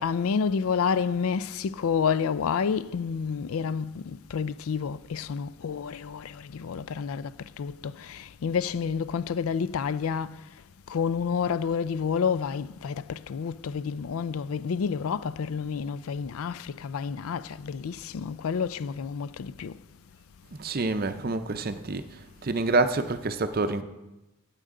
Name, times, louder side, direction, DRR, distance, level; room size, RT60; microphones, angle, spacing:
voice 1, 0.0-10.4 10.9-19.8, left 6 dB, 85° left, 0.4 m, -29 dB
voice 2, 20.6-22.1 22.4-23.8, right 3 dB, 45° right, 0.6 m, -27 dB
15.5 x 8.9 x 3.7 m
head